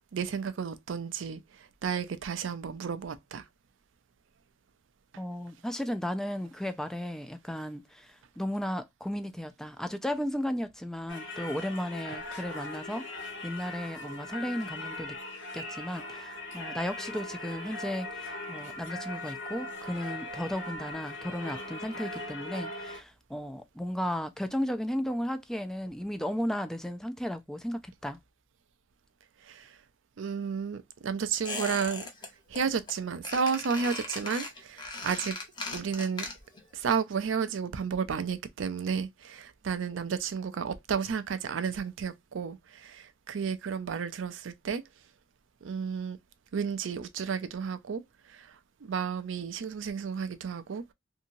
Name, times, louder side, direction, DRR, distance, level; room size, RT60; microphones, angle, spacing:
voice 1, 0.1-1.4 1.8-3.4 29.4-29.7 30.2-32.0 32.5-35.4 35.7-36.3 36.7-44.8 45.6-46.2 46.5-48.0 48.3-48.5 48.8-50.8, right 6 dB, 80° right, 0.4 m, -32 dB
voice 2, 5.2-15.2 15.5-28.2, equal, 5° left, 0.3 m, -35 dB
Singing / Church bell, 11.1-23.0, left 2 dB, 90° left, 1.2 m, -40 dB
Squeak, 31.4-32.3 32.5-32.9 33.2-36.6 36.9-37.0, left 3 dB, 25° left, 0.8 m, -38 dB
2.7 x 2.7 x 2.6 m
head